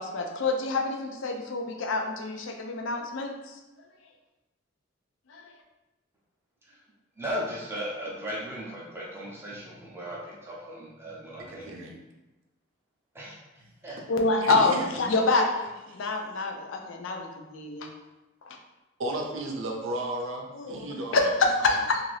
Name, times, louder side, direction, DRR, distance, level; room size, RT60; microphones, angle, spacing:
voice 1, 0.0-3.5 5.3-5.5 14.1-17.9 18.5-18.6 20.5-20.9 21.1-22.0, left 3 dB, 70° left, 2 dB, 0.4 m, -27 dB
voice 2, 7.2-11.8 13.1-13.4 13.8-14.0, equal, 10° right, -5 dB, 0.6 m, -36 dB
voice 3, 11.4-12.0 14.4-14.9 19.0-21.3 21.7-21.8, right 2 dB, 80° right, 1 dB, 0.6 m, -34 dB
2.7 x 2.5 x 3.2 m, 1.1 s
head